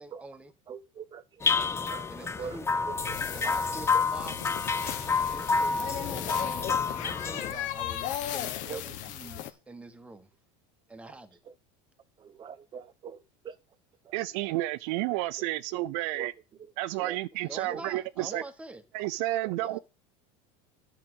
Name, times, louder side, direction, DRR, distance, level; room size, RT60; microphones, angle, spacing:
voice 1, 0.0-0.5 2.1-2.7 3.3-4.8 5.1-6.1 7.0-10.3 10.9-11.4 17.4-18.8 19.6-19.8, right 2 dB, 10° right, 1.3 m, -46 dB
voice 2, 0.7-2.6 2.9-3.0 3.4-3.5 3.9-4.0 6.8-6.9 8.7-8.8 12.2-13.6 14.0-14.1 15.4-15.5 16.1-16.3 17.0-17.2 17.7-17.8 18.3-18.4, right 7 dB, 30° right, 0.9 m, -42 dB
sound 1, 1.4-7.5, left 4 dB, 15° left, 0.8 m, -29 dB
sound 2, 3.0-9.5, left 11 dB, 55° left, 1.4 m, -36 dB
voice 3, 14.1-16.3 16.8-18.4 18.9-19.8, right 17 dB, 70° right, 0.5 m, -31 dB
10.5 x 5.0 x 7.9 m
supercardioid pair, 135°, 16 cm